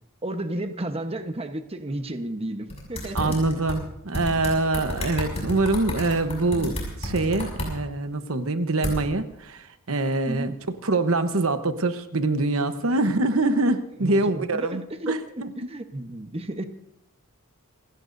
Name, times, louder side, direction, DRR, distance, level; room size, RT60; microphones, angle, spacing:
voice 1, 0.2-3.4 10.2-10.5 12.9-13.0 14.0-16.7, right 1 dB, 30° right, 7 dB, 1.1 m, -33 dB
sound 1, 2.7-3.8 4.1-7.7 8.8-9.0, left 1 dB, 30° left, 6.3 m, -30 dB
voice 2, 3.1-10.5 10.8-15.5, right 2 dB, 70° right, 9 dB, 1.1 m, -24 dB
27.5 x 17.0 x 2.7 m, 0.83 s
head